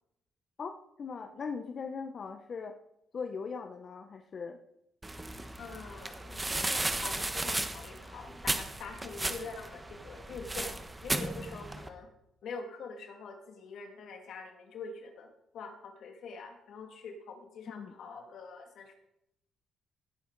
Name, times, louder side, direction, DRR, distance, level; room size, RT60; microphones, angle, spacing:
voice 1, 1.0-2.8 3.1-4.6 17.7-17.9, left 5 dB, 50° left, 6 dB, 0.8 m, -39 dB
sound 1, 5.0-11.9, right 2 dB, 15° right, 1.2 m, -35 dB
voice 2, 5.6-12.1 12.4-15.3 15.5-18.9, left 4 dB, 70° left, 4 dB, 2.2 m, -45 dB
17.5 x 8.8 x 4.0 m, 0.83 s
cardioid pair, 90°, 0 cm